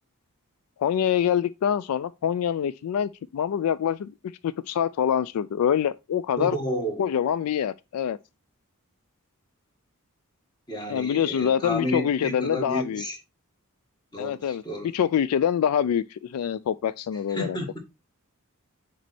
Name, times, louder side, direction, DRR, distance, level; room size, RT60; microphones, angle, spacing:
voice 1, 0.8-4.1 4.4-6.6 7.0-8.2 10.9-13.0 14.2-14.6 14.9-17.6, left 8 dB, 75° left, 0.3 m, -25 dB
voice 2, 6.4-7.1 10.7-13.2 14.1-14.9 17.3-17.8, equal, 20° left, 1.6 m, -31 dB
6.1 x 4.1 x 4.2 m
head